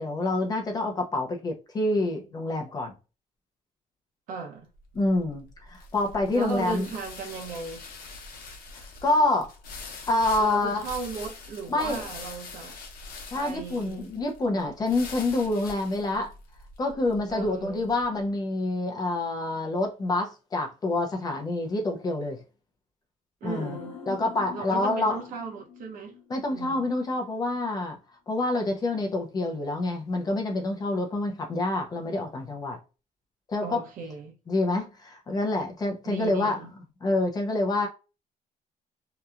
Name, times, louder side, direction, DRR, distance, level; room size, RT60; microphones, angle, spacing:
voice 1, 0.0-2.9 4.9-6.9 9.0-9.5 10.1-10.8 11.7-12.1 13.3-16.3 16.8-22.4 23.4-23.8 24.1-25.2 26.3-28.0 28.3-32.8 33.5-33.8 34.5-36.6 37.0-37.9, left 2 dB, 25° left, 0.5 m, -27 dB
voice 2, 4.3-4.7 6.3-7.8 10.4-12.8 13.3-14.1 17.3-17.9 23.4-24.0 24.5-26.1 26.5-26.9 33.6-34.3 36.0-36.7, right 4 dB, 65° right, 0.8 m, -36 dB
sound 1, 4.8-18.0, left 3 dB, 80° left, 0.8 m, -44 dB
sound 2, 23.4-26.7 27.0-27.1, left 5 dB, 45° left, 0.9 m, -43 dB
2.8 x 2.3 x 2.3 m
cardioid pair, 170°, 15 cm